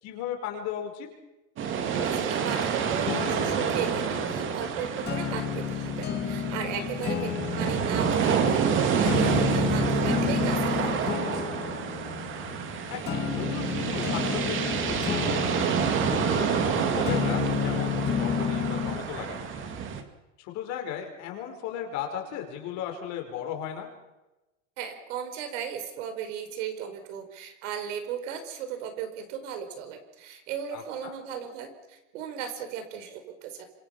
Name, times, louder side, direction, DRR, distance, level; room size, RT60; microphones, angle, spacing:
voice 1, 0.0-1.1 6.7-6.9 12.9-15.4 16.0-19.7 20.4-23.9 30.7-31.2, left 9 dB, 45° left, 3 dB, 5.5 m, -36 dB
sound 1, 1.6-20.0, right 6 dB, 30° right, 2.5 m, -28 dB
voice 2, 2.0-7.3 7.5-11.4 24.8-33.6, right 8 dB, 70° right, 7 dB, 5.2 m, -36 dB
sound 2, 3.1-19.1, left 9 dB, 25° left, 2.0 m, -32 dB
26.5 x 25.5 x 6.0 m, 1.0 s
supercardioid pair, 155°, 38 cm